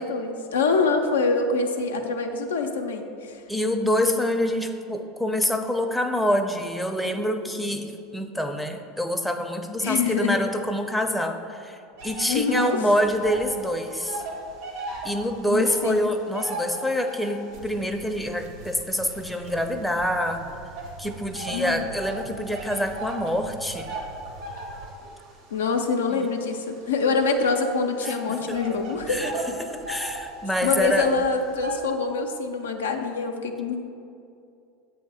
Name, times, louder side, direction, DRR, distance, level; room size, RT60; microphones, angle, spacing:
voice 1, 0.0-3.4 9.8-10.4 12.3-12.8 15.5-16.1 21.5-21.8 25.5-29.3 30.6-33.8, left 4 dB, 85° left, 4 dB, 0.4 m, -25 dB
voice 2, 3.5-11.8 12.0-14.2 15.0-20.4 21.0-23.9 26.1-26.3 28.0-28.6 29.1-29.3 29.6-31.1, equal, ahead, 4 dB, 0.5 m, -26 dB
sound 1, 12.0-13.6 13.8-17.5 18.1-20.1 20.8-31.8, right 1 dB, 80° right, 1.0 m, -37 dB
sound 2, 17.5-24.9, right 3 dB, 65° right, 0.7 m, -45 dB
7.2 x 2.8 x 4.8 m, 2.5 s
hypercardioid pair, 85°, 0 cm